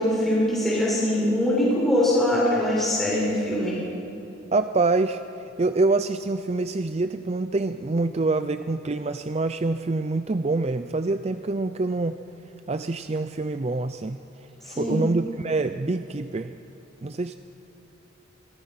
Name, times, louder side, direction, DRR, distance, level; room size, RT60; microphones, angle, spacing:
voice 1, 0.0-3.8 14.7-15.0, left 1 dB, ahead, -8 dB, 6.9 m, -23 dB
voice 2, 4.5-12.2 12.7-14.2 14.6-16.5 17.0-17.4, right 3 dB, 35° right, 10 dB, 0.5 m, -26 dB
25.5 x 22.5 x 5.8 m, 2.8 s
head